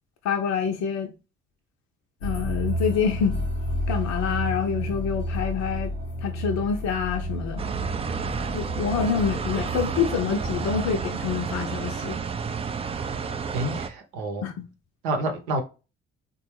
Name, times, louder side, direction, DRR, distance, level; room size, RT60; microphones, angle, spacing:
voice 1, 0.2-1.1 2.2-3.4 3.9-5.9 6.2-7.6 8.5-12.2 14.4-14.7, left 6 dB, 55° left, 0.6 m, -27 dB
sound 1, 2.2-11.5, left 1 dB, 85° left, 0.9 m, -31 dB
sound 2, 7.6-13.9, right 5 dB, 20° right, 0.3 m, -30 dB
voice 2, 13.5-14.5 15.0-15.6, right 1 dB, 75° right, 0.8 m, -28 dB
3.6 x 2.2 x 3.1 m
hypercardioid pair, 45°, 32 cm